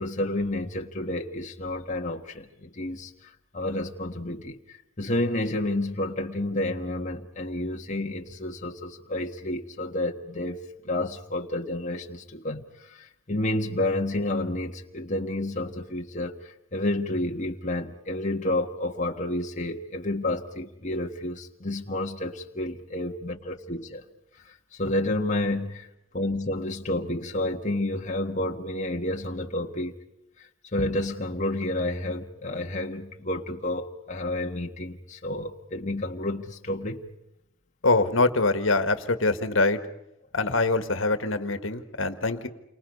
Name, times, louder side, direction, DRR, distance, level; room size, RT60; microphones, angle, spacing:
voice 1, 0.0-24.0 24.4-25.9 26.1-29.9 30.4-37.1, left 1 dB, 40° left, 1 dB, 1.6 m, -30 dB
voice 2, 37.8-39.8 40.3-42.5, left 3 dB, 70° left, 9 dB, 1.8 m, -24 dB
29.5 x 24.5 x 5.5 m, 0.89 s
head